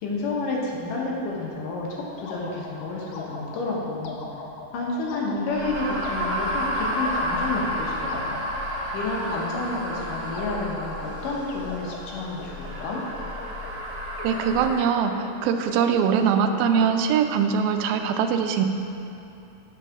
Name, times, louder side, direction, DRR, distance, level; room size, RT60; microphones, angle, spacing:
voice 1, 0.0-4.2 4.7-8.4 8.9-13.0, left 2 dB, 70° left, -3 dB, 2.5 m, -30 dB
sound 1, 2.1-17.4, left 4 dB, 85° left, 1.6 m, -41 dB
sound 2, 5.5-14.8, equal, 65° right, 1.9 m, -31 dB
voice 2, 14.2-18.7, right 7 dB, 85° right, 7 dB, 2.4 m, -22 dB
8.6 x 4.7 x 5.9 m, 2.8 s
omnidirectional pair, 4.2 m